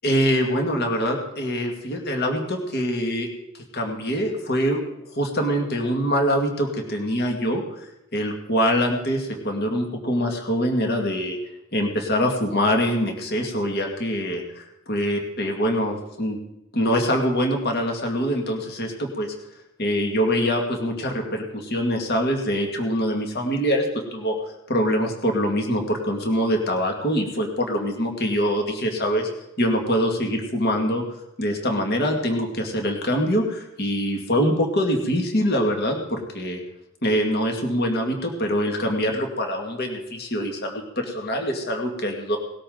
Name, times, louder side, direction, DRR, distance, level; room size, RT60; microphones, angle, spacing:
voice 1, 0.0-3.3 3.7-4.8 5.2-11.4 11.7-16.4 16.7-19.3 19.8-23.9 24.1-24.4 24.7-29.3 29.6-31.0 31.4-36.6 37.0-42.4, equal, 50° left, 2 dB, 2.2 m, -24 dB
19.0 x 13.0 x 3.9 m, 0.85 s
head